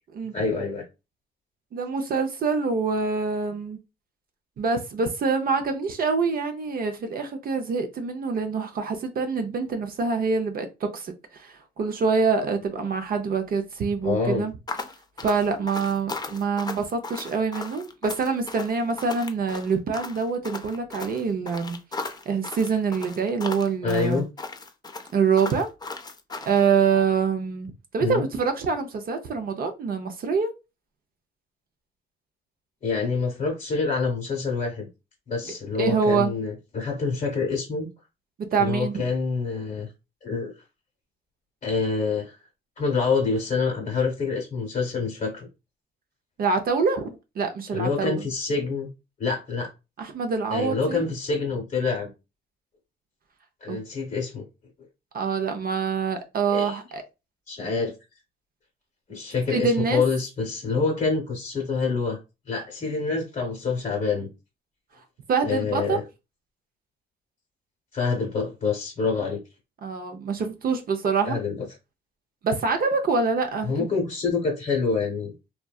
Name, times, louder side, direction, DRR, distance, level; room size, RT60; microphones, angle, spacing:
voice 1, 0.3-0.8 14.0-14.4 23.8-24.2 28.0-28.2 32.8-34.9 35.3-37.9 38.5-39.9 40.2-40.5 41.6-42.4 42.8-45.5 47.7-48.9 49.2-49.7 50.5-52.1 53.6-54.4 56.5-56.8 57.5-57.9 59.1-62.2 62.5-64.3 65.4-66.0 67.9-69.4 71.2-71.7 73.7-75.3, left 4 dB, 40° left, 0.8 m, -26 dB
voice 2, 1.7-3.8 4.6-10.7 10.9-14.5 15.2-21.8 22.3-24.2 25.1-25.7 26.5-30.5 35.8-36.3 38.5-39.0 46.4-48.3 50.0-51.0 53.7-53.8 55.1-57.0 59.5-60.0 65.3-66.0 69.8-71.4 72.4-73.9, right 5 dB, 50° right, 0.5 m, -25 dB
sound 1, 14.7-26.7, left 3 dB, 20° left, 0.4 m, -37 dB
2.6 x 2.1 x 2.2 m
cardioid pair, 90°, 20 cm